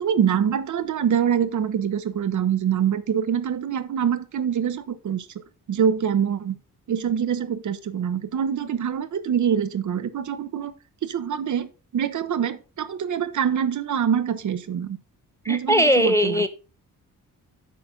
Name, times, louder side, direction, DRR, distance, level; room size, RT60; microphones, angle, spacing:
voice 1, 0.0-5.3 5.7-6.6 6.9-10.7 11.0-15.0 15.5-16.4, right 8 dB, 60° right, 13 dB, 0.8 m, -25 dB
voice 2, 15.5-16.5, equal, 10° left, 10 dB, 0.4 m, -19 dB
8.5 x 5.8 x 3.7 m, 0.34 s
wide cardioid pair, 175°, 34 cm